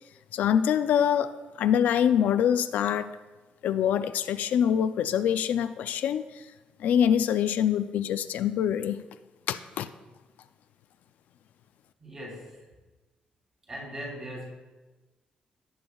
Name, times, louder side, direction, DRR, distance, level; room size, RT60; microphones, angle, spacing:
voice 1, 0.3-3.2 3.6-6.4 6.8-9.0 9.5-9.9, left 9 dB, 75° left, 11 dB, 0.4 m, -25 dB
voice 2, 12.0-12.7 13.7-14.5, equal, 25° right, -4 dB, 3.4 m, -39 dB
17.5 x 8.7 x 2.3 m, 1.1 s
cardioid pair, 155°, 3 cm